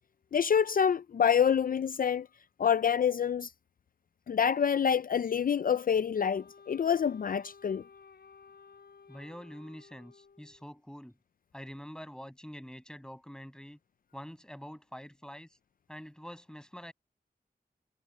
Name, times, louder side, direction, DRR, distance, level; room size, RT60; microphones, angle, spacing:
voice 1, 0.3-2.3 2.6-3.5 4.3-7.8, left 7 dB, 60° left, 0.4 m, -27 dB
Wind instrument woodwind instrument, 6.2-10.8, left 5 dB, 85° left, 5.4 m, -56 dB
voice 2, 9.1-11.1 11.5-13.8 14.1-15.5 15.9-16.9, equal, 5° left, 7.6 m, -46 dB
wide cardioid pair, 65°, 16 cm